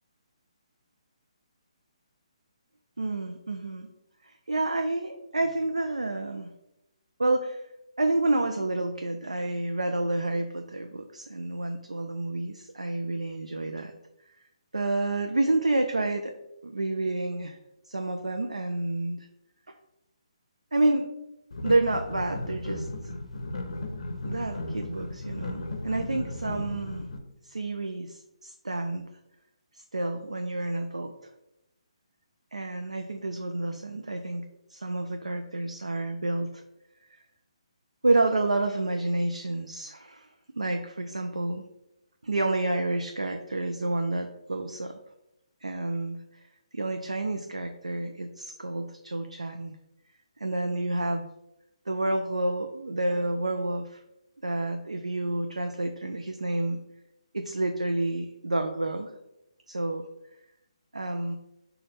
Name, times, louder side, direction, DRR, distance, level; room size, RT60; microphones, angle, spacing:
voice 1, 3.0-3.9 4.2-6.5 7.2-7.6 8.0-13.9 14.7-16.3 16.6-17.6 17.9-19.3 19.7-19.8 20.7-21.1 21.6-22.9 24.2-27.1 27.4-29.1 29.7-31.1 32.5-34.4 34.7-36.6 37.1-37.2 38.0-40.3 40.6-41.6 42.2-45.0 45.6-46.4 46.7-49.8 50.4-51.3 51.9-54.0 54.4-56.8 57.3-59.1 59.7-60.1 60.9-61.4, right 2 dB, 80° right, 5 dB, 0.3 m, -29 dB
sound 1, 21.5-27.2, left 2 dB, 65° left, 0.6 m, -35 dB
5.5 x 2.2 x 3.3 m, 0.86 s
figure-of-eight pair, 140°, 3 cm